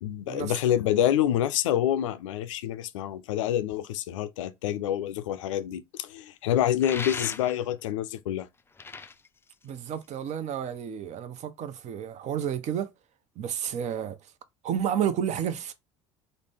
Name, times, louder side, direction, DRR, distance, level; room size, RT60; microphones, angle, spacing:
voice 1, 0.0-8.5, left 11 dB, 75° left, 0.4 m, -27 dB
sound 1, 6.8-7.8 8.6-10.3, left 4 dB, 15° left, 0.4 m, -38 dB
voice 2, 9.6-12.9 13.4-14.2 14.6-15.7, right 9 dB, 45° right, 0.6 m, -31 dB
3.8 x 2.1 x 3.4 m
hypercardioid pair, 65°, 16 cm